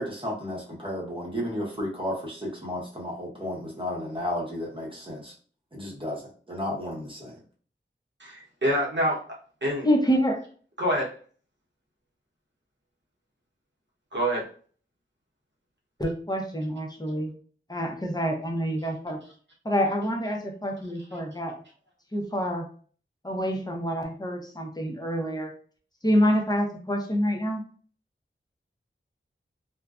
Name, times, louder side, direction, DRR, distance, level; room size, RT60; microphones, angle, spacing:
voice 1, 0.0-5.3 5.7-7.4, left 1 dB, 25° right, -4 dB, 0.9 m, -33 dB
voice 2, 8.2-9.3 9.6-9.9 10.8-11.1 14.1-14.4, equal, 60° right, -3 dB, 0.8 m, -26 dB
voice 3, 9.8-10.4 16.0-17.3 17.7-19.2 19.6-21.6 22.1-22.7 23.2-25.5 26.0-27.6, equal, 20° left, 1 dB, 0.6 m, -27 dB
2.5 x 2.1 x 2.3 m, 0.43 s
wide cardioid pair, 55°, 21 cm